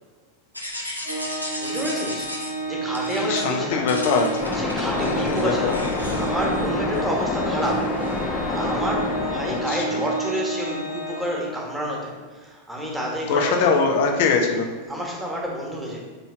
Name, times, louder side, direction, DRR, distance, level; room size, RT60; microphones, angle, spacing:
sound 1, 0.5-2.5 2.9-3.5 3.9-7.2 7.6-8.2, left 1 dB, 90° left, 1.3 m, -35 dB
Organ, 1.0-11.8, right 2 dB, 80° right, 2.0 m, -30 dB
voice 1, 1.6-2.3 2.7-3.9 4.6-5.8 6.2-7.9 8.2-13.5 14.9-16.0, equal, 5° right, -3 dB, 2.1 m, -29 dB
voice 2, 3.2-4.4 4.8-5.8 6.1-6.3 9.5-10.0 13.3-14.7, left 5 dB, 50° left, 3 dB, 1.3 m, -23 dB
Waves surf, 4.4-9.6, left 3 dB, 20° left, 1.3 m, -27 dB
7.8 x 4.4 x 5.9 m, 1.4 s
figure-of-eight pair, 90°, 0 cm